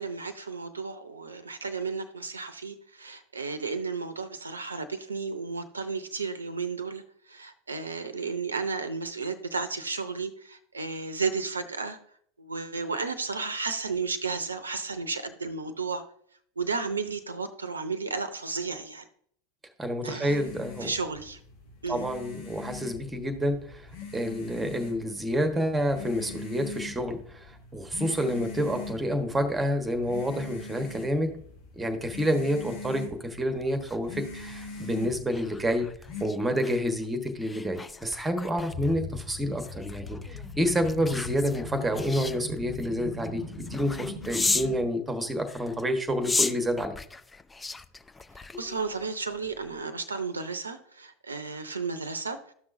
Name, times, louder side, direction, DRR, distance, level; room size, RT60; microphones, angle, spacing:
voice 1, 0.0-7.0 7.3-12.0 12.4-16.0 16.6-19.0 20.0-20.4 20.8-21.4 21.8-22.0 48.6-52.4, right 4 dB, 80° right, 11 dB, 0.6 m, -33 dB
voice 2, 19.8-20.9 21.9-23.9 24.1-31.4 31.8-35.9 36.2-47.0, equal, 10° right, 7 dB, 1.3 m, -29 dB
sound 1, 20.3-36.2, left 3 dB, 60° left, 1.9 m, -43 dB
sound 2, 33.6-44.8 45.4-49.0 49.4-49.7, left 3 dB, 15° left, 0.5 m, -36 dB
sound 3, 38.7-44.8, left 2 dB, 80° left, 2.6 m, -39 dB
13.0 x 6.1 x 2.6 m, 0.62 s
figure-of-eight pair, 85°, 0 cm